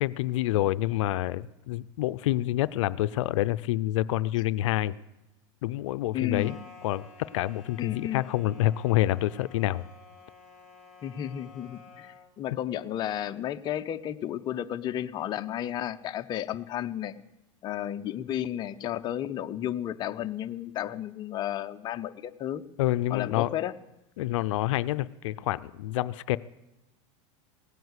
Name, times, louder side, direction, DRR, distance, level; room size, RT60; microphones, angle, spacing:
voice 1, 0.0-5.0 5.6-6.6 6.8-9.9 22.8-23.5 24.2-26.4, left 15 dB, 75° left, 15 dB, 0.5 m, -27 dB
voice 2, 6.1-6.6 7.8-8.3 11.0-17.1 17.6-22.6 23.1-23.7, left 11 dB, 25° left, 7 dB, 0.6 m, -33 dB
sound 1, 6.3-12.3, left 5 dB, 5° right, 4.0 m, -52 dB
17.5 x 9.3 x 8.2 m, 0.96 s
supercardioid pair, 145°, 16 cm